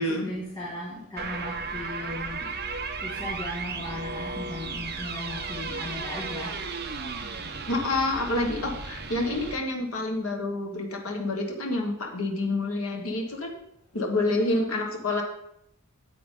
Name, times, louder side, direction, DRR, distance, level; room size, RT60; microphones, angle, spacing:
voice 1, 0.0-2.6 3.0-6.6, left 1 dB, 20° left, -7 dB, 2.1 m, -37 dB
sound 1, 1.2-9.6, right 4 dB, 45° right, 0.9 m, -35 dB
voice 2, 7.7-13.5 13.9-15.2, left 2 dB, 70° left, 2 dB, 1.3 m, -28 dB
9.4 x 7.8 x 3.7 m, 0.76 s
head